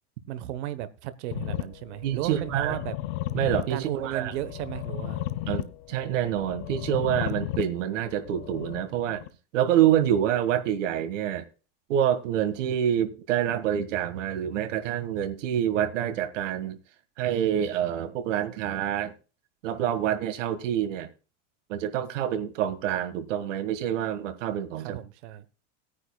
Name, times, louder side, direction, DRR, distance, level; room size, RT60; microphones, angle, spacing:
voice 1, 0.3-3.0 3.7-5.3 24.8-25.4, right 13 dB, 65° right, 1.1 m, -34 dB
sound 1, 1.3-9.3, left 15 dB, 45° left, 0.8 m, -35 dB
voice 2, 2.0-2.8 3.3-4.3 5.5-9.2 9.5-11.4 11.9-16.8 17.2-19.1 19.6-21.1 21.7-25.0, right 10 dB, 85° right, 1.8 m, -27 dB
19.0 x 9.7 x 2.3 m
supercardioid pair, 170°, 36 cm